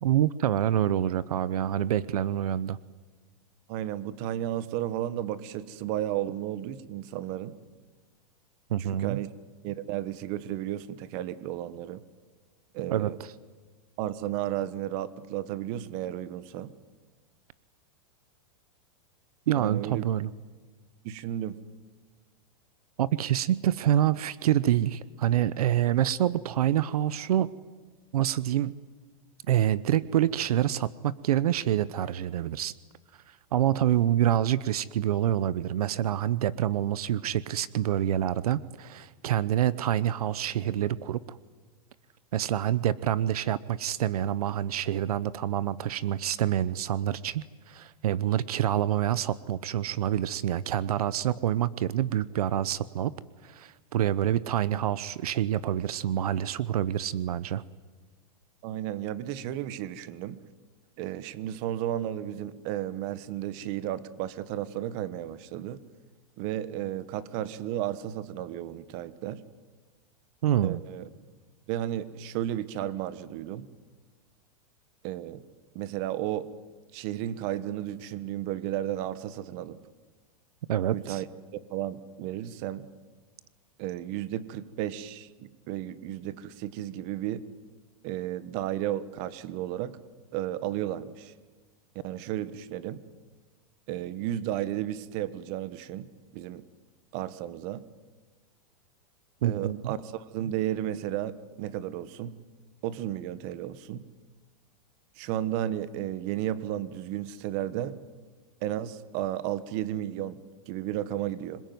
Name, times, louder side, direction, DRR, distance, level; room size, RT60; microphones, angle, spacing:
voice 1, 0.0-2.8 8.7-9.2 12.9-13.1 19.5-20.3 23.0-27.5 28.1-28.7 29.5-32.7 33.3-41.4 42.3-53.1 53.4-57.6 70.4-70.8 80.7-81.2 99.4-99.9, right 11 dB, 80° right, 18 dB, 0.9 m, -27 dB
voice 2, 3.7-7.6 8.8-9.3 9.6-12.0 12.7-13.2 14.0-16.7 19.6-20.0 21.0-21.6 58.6-60.4 61.0-65.8 66.4-69.4 70.6-71.1 71.7-73.7 75.0-75.4 75.7-76.5 76.9-79.8 80.9-81.3 81.7-82.9 83.8-87.4 88.0-90.0 90.3-91.3 92.0-93.0 93.9-96.6 97.1-97.8 99.4-102.4 102.8-104.0 105.2-108.0 108.6-111.6, right 12 dB, 40° right, 16 dB, 1.3 m, -33 dB
26.5 x 21.5 x 9.4 m, 1.4 s
supercardioid pair, 150°, 19 cm